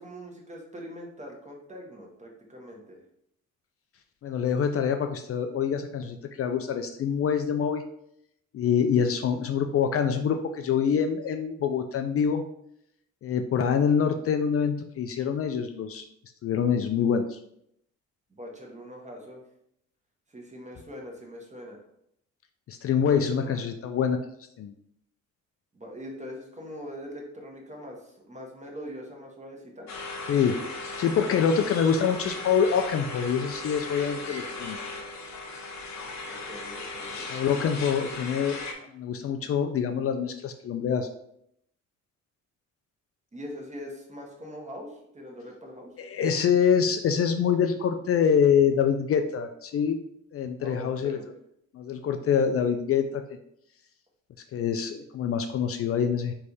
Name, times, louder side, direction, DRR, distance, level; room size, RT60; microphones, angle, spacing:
voice 1, 0.0-3.0 18.3-19.4 20.3-21.8 23.1-23.6 25.7-29.9 36.2-37.3 43.3-45.9 50.6-51.2, equal, 25° right, 0 dB, 1.3 m, -42 dB
voice 2, 4.2-7.8 8.5-12.4 13.2-16.1 16.4-17.4 22.7-24.2 24.6-24.7 30.3-30.6 31.0-34.8 37.3-38.6 38.9-41.1 46.0-50.0 50.3-51.2 51.7-53.2 54.5-56.3, left 7 dB, 50° left, 7 dB, 0.4 m, -25 dB
sound 1, 29.9-38.7, left 3 dB, 65° left, 1.0 m, -37 dB
3.4 x 3.3 x 4.0 m, 0.74 s
cardioid pair, 90°, 30 cm